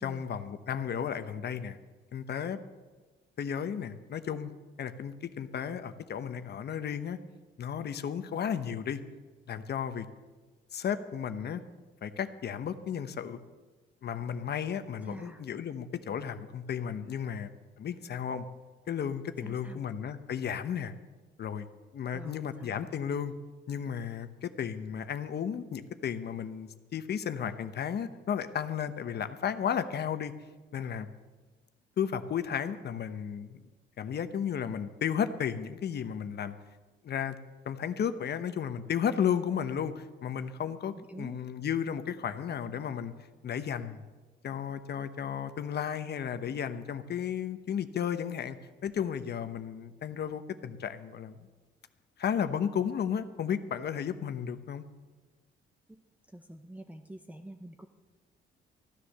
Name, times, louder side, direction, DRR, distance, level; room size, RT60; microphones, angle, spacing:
voice 1, 0.0-1.8 2.1-2.6 3.4-4.5 4.8-7.2 7.6-9.0 9.5-10.1 10.7-11.6 12.0-13.4 14.0-17.5 17.8-18.4 18.9-20.9 21.4-21.7 21.9-23.3 23.7-30.3 30.7-31.1 32.0-33.6 34.0-36.5 37.0-37.4 37.6-43.1 43.4-44.0 44.4-48.6 48.8-51.4 52.2-54.8, left 8 dB, 55° left, 10 dB, 1.0 m, -33 dB
voice 2, 15.0-15.4 19.4-19.8 22.1-22.8 41.0-41.4 55.9-56.0 56.3-57.9, right 1 dB, 5° right, 5 dB, 0.8 m, -46 dB
15.0 x 10.0 x 6.7 m, 1.3 s
cardioid pair, 90°, 20 cm